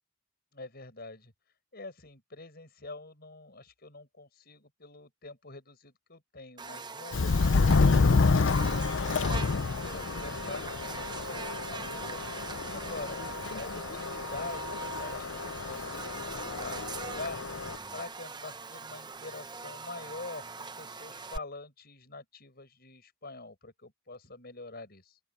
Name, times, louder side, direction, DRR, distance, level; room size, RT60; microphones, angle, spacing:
voice 1, 0.5-1.3 1.7-7.8 8.3-13.2 13.5-25.2, left 3 dB, 50° left, 6.6 m, -45 dB
Buzz, 6.6-21.4, right 4 dB, 20° right, 0.8 m, -42 dB
Subway metro underground, 7.1-17.8, left 4 dB, 65° left, 0.6 m, -29 dB
sound 1, 9.7-18.0, equal, 25° left, 7.8 m, -56 dB
open air
head